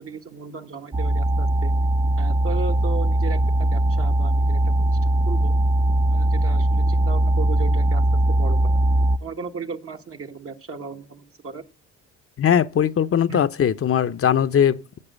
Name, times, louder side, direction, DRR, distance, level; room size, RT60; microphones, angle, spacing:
voice 1, 0.0-1.7 2.2-5.5 6.1-8.6 9.2-11.6 13.3-13.4, right 4 dB, 45° right, 1.6 m, -36 dB
sound 1, 0.9-9.2, right 1 dB, 20° right, 0.8 m, -20 dB
voice 2, 12.4-15.0, left 9 dB, 45° left, 0.9 m, -20 dB
11.0 x 8.2 x 8.1 m
cardioid pair, 90°, 30 cm